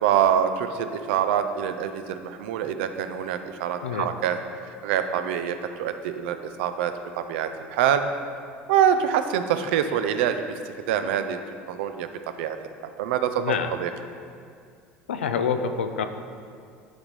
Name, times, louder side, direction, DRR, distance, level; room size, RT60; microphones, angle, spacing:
voice 1, 0.0-4.4 4.8-8.0 8.7-10.4 10.9-11.4 11.7-12.1 12.4-12.6 13.0-13.3 13.8-13.9, right 9 dB, 75° right, 9 dB, 0.4 m, -25 dB
voice 2, 13.4-13.8 15.1-16.0, left 6 dB, 90° left, 8 dB, 0.4 m, -26 dB
11.0 x 3.7 x 3.1 m, 2.3 s
hypercardioid pair, 75°, 6 cm